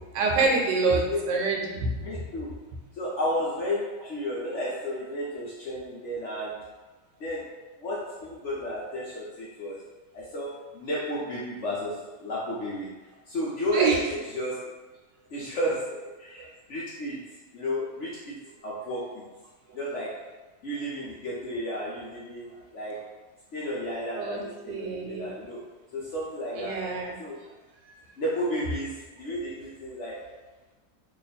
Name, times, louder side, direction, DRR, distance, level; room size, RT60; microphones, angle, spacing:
voice 1, 0.1-2.0 13.7-14.0 24.1-24.4 24.7-25.3 26.6-27.1, right 4 dB, 85° right, 0 dB, 1.3 m, -26 dB
voice 2, 0.8-1.2 2.0-2.5 3.0-6.6 7.2-7.5 7.8-9.8 10.1-12.9 13.3-14.7 15.3-17.2 17.5-19.2 19.7-20.2 20.6-23.0 23.5-25.6 25.9-26.8 27.2-27.4 28.2-30.2, equal, 60° left, -6 dB, 0.8 m, -32 dB
3.0 x 2.5 x 4.0 m, 1.2 s
omnidirectional pair, 1.9 m